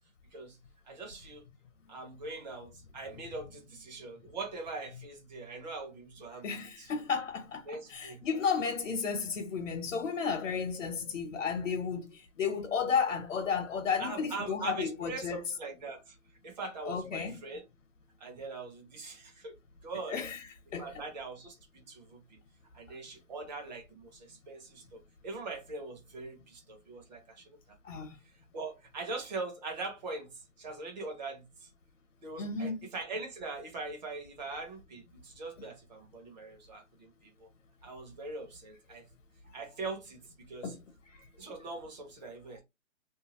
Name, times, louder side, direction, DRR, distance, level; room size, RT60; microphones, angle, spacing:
voice 1, 0.8-1.4 1.9-6.9 7.7-8.2 14.0-16.2 16.4-17.7 18.2-19.6 19.8-20.2 20.8-22.4 22.7-27.8 28.2-30.3 30.6-31.7 32.2-37.5 37.8-39.1 39.5-40.7 41.4-42.6, right 3 dB, 30° right, 1.0 m, -42 dB
voice 2, 6.4-7.6 7.9-12.1 12.4-15.4 16.9-17.4 20.1-20.4 20.7-20.9 27.8-28.1 32.4-32.8 40.6-40.8, left 6 dB, 65° left, 1.0 m, -32 dB
2.7 x 2.3 x 2.9 m
hypercardioid pair, 160°, 40 cm